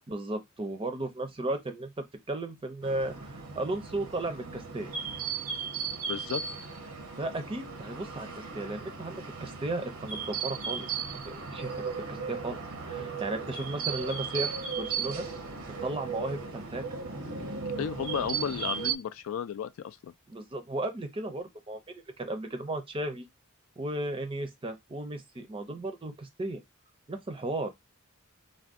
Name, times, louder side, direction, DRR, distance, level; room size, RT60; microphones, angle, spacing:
voice 1, 0.1-4.9 7.2-10.9 11.3-12.6 12.9-15.3 15.8-17.0 20.3-23.3 23.8-26.6 27.1-27.7, right 2 dB, 25° right, 0.5 m, -35 dB
sound 1, 2.8-19.0, right 6 dB, 75° right, 0.7 m, -36 dB
voice 2, 6.1-6.4 17.8-20.1, left 8 dB, 65° left, 0.3 m, -33 dB
2.5 x 2.2 x 3.5 m
head